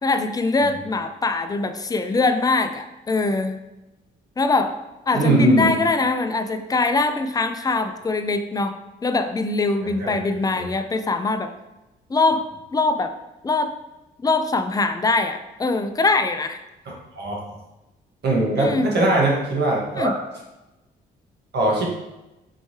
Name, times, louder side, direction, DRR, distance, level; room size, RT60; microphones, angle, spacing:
voice 1, 0.0-3.6 4.4-4.7 5.1-11.5 12.1-13.1 13.4-13.7 14.2-16.6 18.6-18.9 20.0-20.1, left 3 dB, 20° left, 8 dB, 0.4 m, -22 dB
voice 2, 5.1-5.7 10.0-10.1 10.5-10.6 17.2-17.3 18.2-20.1 21.5-21.8, right 2 dB, 60° right, -3 dB, 1.3 m, -20 dB
4.5 x 3.1 x 2.8 m, 0.98 s
supercardioid pair, 65°, 19 cm